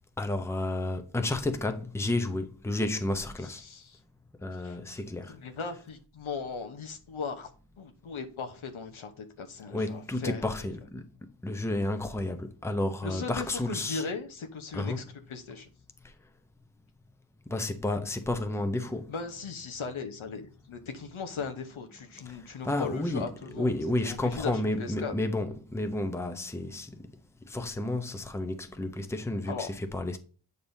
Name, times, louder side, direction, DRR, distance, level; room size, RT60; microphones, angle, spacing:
voice 1, 0.2-3.6 4.4-5.4 9.7-11.1 11.4-14.0 14.7-15.0 17.5-19.1 22.3-22.4 22.6-23.3 23.5-26.9 27.4-30.2, left 2 dB, 5° left, 0.7 m, -31 dB
voice 2, 3.4-4.0 4.5-4.8 5.3-7.5 7.8-10.5 13.0-15.7 19.1-23.7 24.0-25.1 29.5-29.7, left 5 dB, 75° left, 1.0 m, -38 dB
8.3 x 5.4 x 2.7 m
wide cardioid pair, 75°, 49 cm